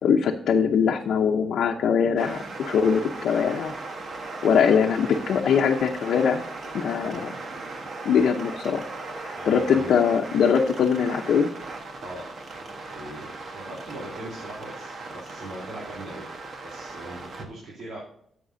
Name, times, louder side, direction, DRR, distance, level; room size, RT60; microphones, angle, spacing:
voice 1, 0.0-3.7 4.4-6.4 6.7-7.3 8.0-8.9 9.2-11.5, left 7 dB, 80° left, 1 dB, 0.7 m, -22 dB
sound 1, 2.2-17.5, right 3 dB, 55° right, 1.3 m, -38 dB
voice 2, 9.3-9.9 12.0-12.2 12.8-16.3 16.6-18.0, right 1 dB, 75° right, -6 dB, 3.3 m, -40 dB
11.0 x 7.7 x 2.7 m, 0.68 s
cardioid pair, 130°, 0 cm